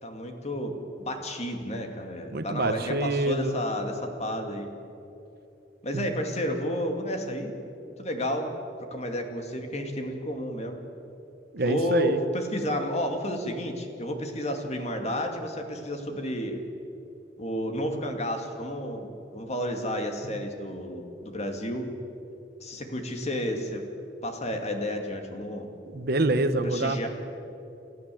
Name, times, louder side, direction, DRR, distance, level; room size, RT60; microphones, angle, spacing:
voice 1, 0.0-4.7 5.8-7.5 8.0-8.5 8.9-10.8 11.6-16.6 17.4-19.1 19.3-21.9 22.6-23.8 24.2-25.7 26.6-27.1, equal, 35° left, 4 dB, 2.4 m, -31 dB
voice 2, 2.3-3.6 5.9-6.1 11.5-12.2 25.9-27.1, right 2 dB, 55° right, 10 dB, 1.1 m, -26 dB
29.5 x 14.0 x 7.8 m, 2.8 s
head